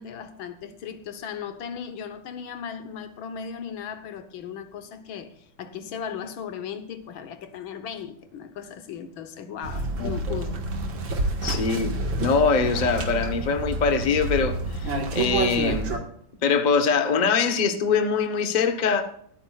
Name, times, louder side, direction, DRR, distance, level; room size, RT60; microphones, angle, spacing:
voice 1, 0.0-10.6, left 7 dB, 85° left, 1.8 m, -37 dB
sound 1, 9.6-16.0, right 2 dB, 70° right, 2.4 m, -28 dB
voice 2, 10.0-10.4 11.4-16.0 16.4-19.0, left 5 dB, 30° left, 0.9 m, -23 dB
23.0 x 8.8 x 2.4 m
omnidirectional pair, 2.1 m